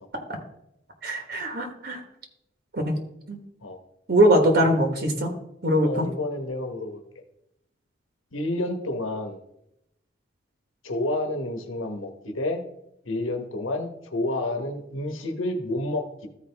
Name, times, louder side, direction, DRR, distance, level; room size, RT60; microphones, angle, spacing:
voice 1, 1.0-2.0 2.7-2.9 3.3-3.4 4.1-5.3 5.6-6.1, right 1 dB, 50° right, 3 dB, 1.3 m, -21 dB
voice 2, 4.4-4.7 5.8-7.0 8.3-9.4 10.8-12.6 13.0-16.3, left 1 dB, 85° left, 5 dB, 1.3 m, -30 dB
14.5 x 4.8 x 3.5 m, 0.80 s
head